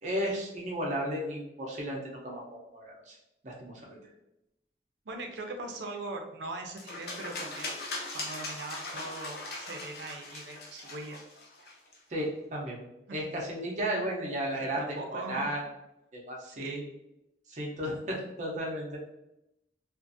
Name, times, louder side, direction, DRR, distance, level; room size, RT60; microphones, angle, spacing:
voice 1, 0.0-3.2 3.4-4.0 12.1-12.8 13.1-15.6 16.1-16.8 17.5-19.1, equal, 45° right, -2 dB, 0.7 m, -34 dB
voice 2, 5.1-7.7 8.1-11.2 13.1-13.2 14.8-15.5 16.4-16.8, right 2 dB, 80° right, 3 dB, 0.5 m, -40 dB
sound 1, 6.8-12.0, left 2 dB, 60° left, 0.6 m, -40 dB
2.5 x 2.4 x 2.6 m, 0.88 s
head